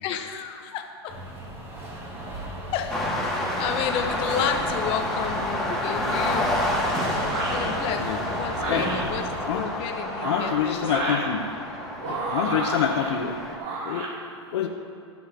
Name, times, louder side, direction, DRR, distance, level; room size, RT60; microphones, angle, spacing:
voice 1, 0.0-1.1 2.7-6.6 7.5-9.2 9.5-10.8, left 8 dB, 40° left, 4 dB, 1.2 m, -31 dB
sound 1, 1.1-9.7, right 1 dB, 20° right, 2.8 m, -35 dB
sound 2, 2.9-13.6, left 1 dB, ahead, 2.0 m, -29 dB
sound 3, 7.2-7.7 8.5-9.0 10.0-11.3 12.0-13.1 13.6-14.1, right 2 dB, 45° right, 3.0 m, -31 dB
voice 2, 9.5-9.9 10.2-11.5 12.0-13.4 13.8-14.1 14.5-14.7, left 8 dB, 65° left, 3 dB, 1.0 m, -27 dB
22.5 x 7.6 x 3.0 m, 2.6 s
hypercardioid pair, 130°, 15 cm